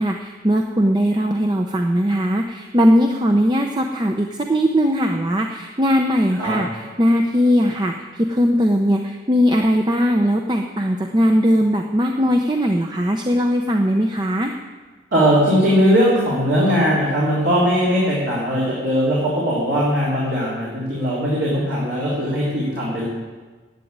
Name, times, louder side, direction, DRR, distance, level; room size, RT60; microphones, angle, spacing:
voice 1, 0.0-14.5, equal, 25° right, 3 dB, 0.6 m, -19 dB
voice 2, 15.1-23.1, equal, 65° right, -8 dB, 3.5 m, -19 dB
11.0 x 8.5 x 9.5 m, 1.4 s
head